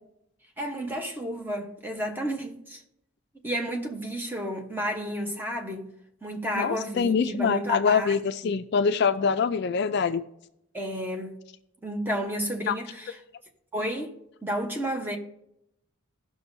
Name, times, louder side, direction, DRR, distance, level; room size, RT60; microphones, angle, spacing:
voice 1, 0.6-2.8 3.4-5.9 6.2-8.2 8.4-8.6 10.7-11.4 11.8-13.2 13.7-14.1 14.4-15.2, equal, 10° right, 1.0 m, -31 dB
voice 2, 6.6-10.2 12.7-12.8, left 6 dB, 50° left, 0.3 m, -24 dB
16.5 x 6.1 x 2.7 m
head